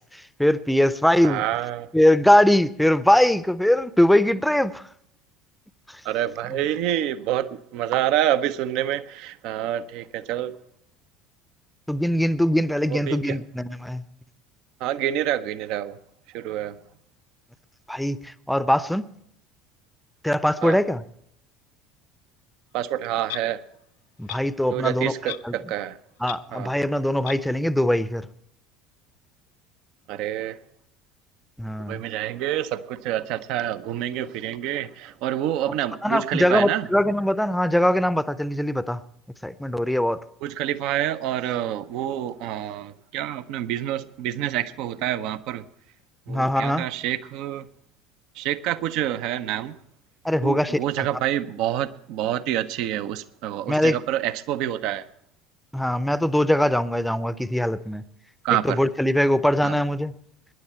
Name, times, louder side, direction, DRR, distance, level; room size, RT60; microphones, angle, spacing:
voice 1, 0.0-1.4 1.9-4.9 5.9-6.0 11.9-14.1 17.9-19.1 20.2-21.0 24.2-25.6 26.2-28.3 31.6-32.0 36.0-39.0 39.4-40.2 46.3-46.9 50.2-51.1 53.7-54.0 55.7-58.0 58.5-60.1, left 1 dB, ahead, 16 dB, 0.7 m, -22 dB
voice 2, 1.2-1.9 6.0-10.5 12.9-13.4 14.8-16.0 16.3-16.8 20.6-20.8 22.7-23.6 24.7-26.0 26.5-26.7 30.1-30.6 31.9-36.9 40.4-45.6 46.3-47.7 48.4-49.8 50.4-55.1 58.4-58.8 59.6-59.7, right 12 dB, 55° right, 13 dB, 0.7 m, -27 dB
Clock, 23.3-23.4 24.3-24.4 25.3-25.5 25.8-25.9 26.2-26.4 27.2-27.4, left 15 dB, 60° left, 0.5 m, -34 dB
19.5 x 10.5 x 4.4 m, 0.70 s
figure-of-eight pair, 65°, 0 cm